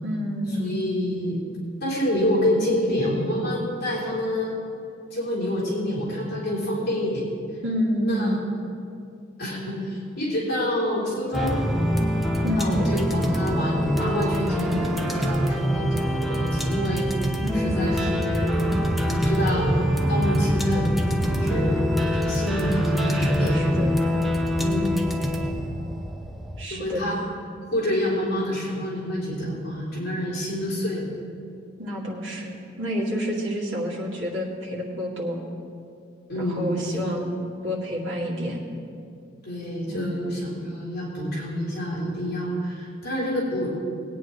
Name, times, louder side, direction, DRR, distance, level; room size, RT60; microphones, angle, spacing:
voice 1, 0.0-0.7 7.6-8.4 12.4-12.8 17.4-18.0 23.1-23.9 26.6-27.2 31.8-35.4 36.3-37.3 37.6-38.6 39.9-40.3, equal, 80° right, -3 dB, 2.3 m, -29 dB
voice 2, 0.6-1.4 1.8-4.5 5.1-7.2 8.0-8.4 9.4-11.6 12.6-17.1 17.5-18.5 19.1-20.9 21.2-21.8 22.1-23.7 24.5-25.0 26.6-27.2 27.7-31.1 36.3-37.1 39.4-43.7, equal, 55° left, -6 dB, 3.3 m, -27 dB
sound 1, 11.3-26.6, equal, ahead, 0.7 m, -24 dB
20.0 x 9.1 x 3.2 m, 2.4 s
head